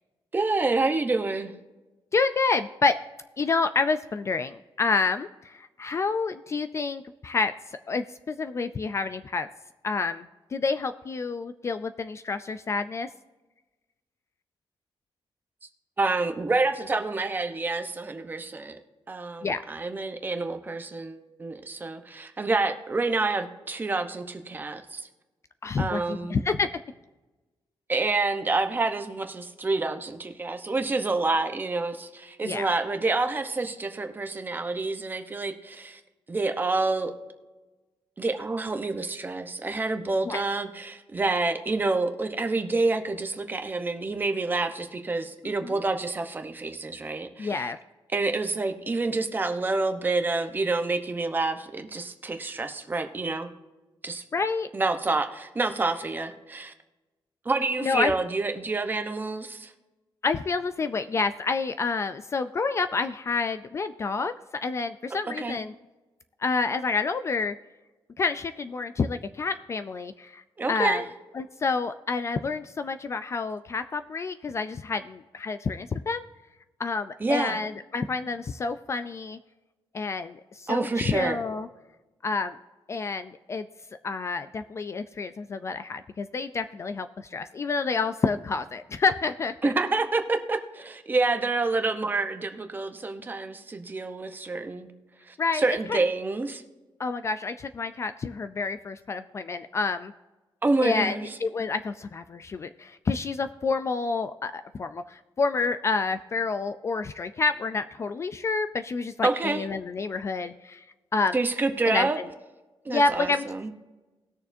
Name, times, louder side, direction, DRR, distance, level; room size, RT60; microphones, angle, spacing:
voice 1, 0.3-1.5 16.0-18.8 19.1-25.1 25.8-26.4 27.9-36.0 36.3-37.1 38.2-47.7 48.1-53.5 54.0-54.2 54.7-56.7 57.4-59.7 65.4-65.6 70.6-71.0 77.2-77.6 80.7-81.4 89.6-94.9 95.3-96.6 100.6-101.4 109.2-109.6 111.3-112.2 112.8-113.7, right 3 dB, 20° right, 6 dB, 0.9 m, -28 dB
voice 2, 2.1-3.0 3.4-9.5 9.8-13.1 19.4-19.6 25.6-26.8 32.4-32.7 40.3-40.4 45.6-45.8 47.4-47.8 54.3-54.7 57.8-58.1 60.2-65.7 66.4-67.6 68.2-70.4 70.7-71.0 71.3-76.2 76.8-79.4 79.9-81.7 82.2-82.6 82.9-83.7 84.0-89.7 95.4-96.0 97.0-100.1 100.8-110.8 111.1-111.4 111.9-112.1 112.9-113.4, left 4 dB, 30° left, 10 dB, 0.3 m, -28 dB
19.5 x 6.7 x 2.7 m, 1.2 s
wide cardioid pair, 180°, 9 cm